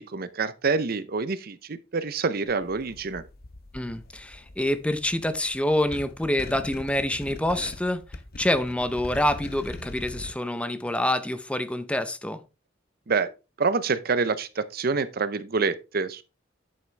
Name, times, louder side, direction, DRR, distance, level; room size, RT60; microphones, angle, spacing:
voice 1, 0.0-3.2 13.1-13.3 13.6-16.2, right 4 dB, 50° right, 0.6 m, -27 dB
sound 1, 2.5-10.3, left 2 dB, 50° left, 0.8 m, -42 dB
voice 2, 3.7-8.0 8.4-12.4, left 1 dB, 5° left, 0.6 m, -26 dB
8.7 x 7.2 x 3.3 m
head